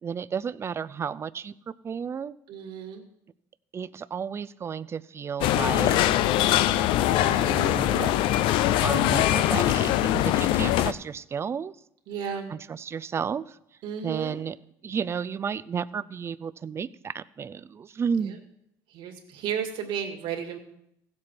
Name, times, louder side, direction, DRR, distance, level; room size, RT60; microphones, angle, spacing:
voice 1, 0.0-2.3 3.7-6.0 7.0-8.1 8.8-11.8 12.5-13.6 14.0-14.6 14.8-18.4, right 6 dB, 30° right, 15 dB, 0.4 m, -32 dB
voice 2, 2.5-3.0 12.1-12.5 13.8-14.4 18.9-20.6, right 8 dB, 65° right, 4 dB, 2.1 m, -33 dB
sound 1, 5.4-10.9, left 13 dB, 70° left, 0.5 m, -22 dB
16.0 x 7.5 x 4.6 m, 0.78 s
supercardioid pair, 100°, 9 cm